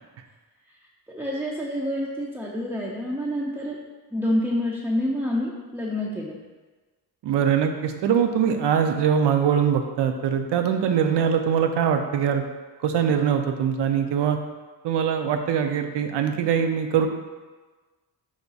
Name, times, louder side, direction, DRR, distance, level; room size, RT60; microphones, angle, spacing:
voice 1, 1.1-3.8 4.1-6.4, left 1 dB, 5° right, -5 dB, 0.3 m, -27 dB
voice 2, 7.2-12.4 12.8-14.4 14.8-17.1, right 8 dB, 75° right, 6 dB, 0.5 m, -22 dB
4.7 x 2.3 x 3.9 m, 1.3 s
cardioid pair, 95°, 42 cm